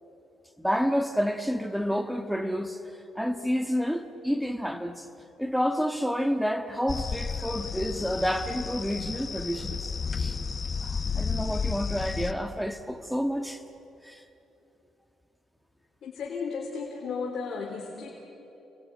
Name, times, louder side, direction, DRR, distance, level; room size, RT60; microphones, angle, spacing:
voice 1, 0.6-2.8 3.1-5.1 5.4-10.4 10.8-13.6 14.0-14.2, equal, ahead, 1.6 m, -29 dB
sound 1, 6.9-12.3, left 5 dB, 35° left, 1.2 m, -32 dB
voice 2, 16.0-18.1, left 5 dB, 65° left, 3.3 m, -34 dB
29.0 x 22.0 x 8.7 m
cardioid pair, 90°, 0 cm